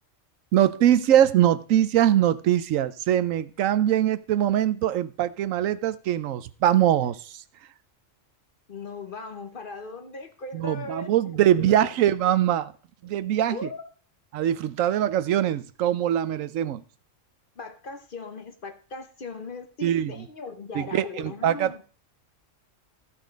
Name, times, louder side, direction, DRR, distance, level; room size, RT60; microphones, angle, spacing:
voice 1, 0.5-7.4 10.5-12.7 13.0-13.7 14.3-16.8 19.8-20.3 20.7-21.8, right 11 dB, 85° right, 1.0 m, -22 dB
voice 2, 8.7-11.9 13.5-13.8 16.3-16.4 17.6-21.8, left 4 dB, 45° left, 1.0 m, -39 dB
14.0 x 5.8 x 5.1 m
omnidirectional pair, 1.3 m